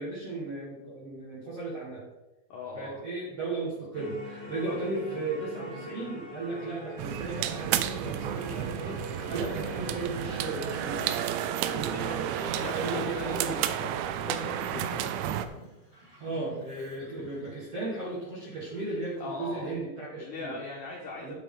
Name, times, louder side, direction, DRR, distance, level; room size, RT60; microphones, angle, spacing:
voice 1, 0.0-2.0 2.7-11.1 11.7-14.0 16.2-20.5 21.2-21.3, right 3 dB, 60° right, -6 dB, 1.6 m, -36 dB
voice 2, 2.5-3.0 11.8-12.1 12.6-13.7 14.3-15.0 19.2-19.7 20.2-21.3, left 3 dB, 80° left, -1 dB, 1.8 m, -39 dB
sound 1, 3.9-11.1, left 1 dB, 15° left, 2.6 m, -42 dB
sound 2, 7.0-15.5, right 10 dB, 80° right, 2.8 m, -32 dB
Bird vocalization bird call bird song, 12.4-19.8, equal, 15° right, 1.4 m, -50 dB
8.9 x 8.5 x 3.8 m, 1.0 s
omnidirectional pair, 5.5 m